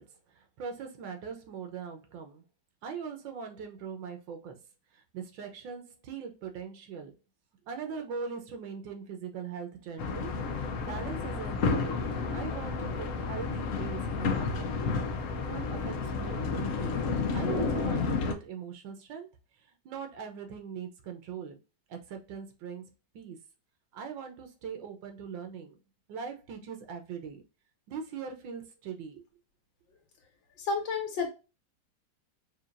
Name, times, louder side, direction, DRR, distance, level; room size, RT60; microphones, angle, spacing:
voice 1, 0.0-2.4 2.8-4.6 4.9-7.1 7.6-10.3 10.6-14.8 15.4-17.0 17.3-19.3 19.6-21.6 21.9-22.9 23.1-23.4 23.9-25.8 26.1-27.4 27.9-29.2, right 6 dB, 90° right, 1.6 m, -41 dB
sound 1, 10.0-18.3, left 4 dB, 65° left, 0.8 m, -31 dB
voice 2, 30.6-31.3, left 4 dB, 90° left, 1.9 m, -30 dB
4.9 x 2.8 x 2.5 m
omnidirectional pair, 2.0 m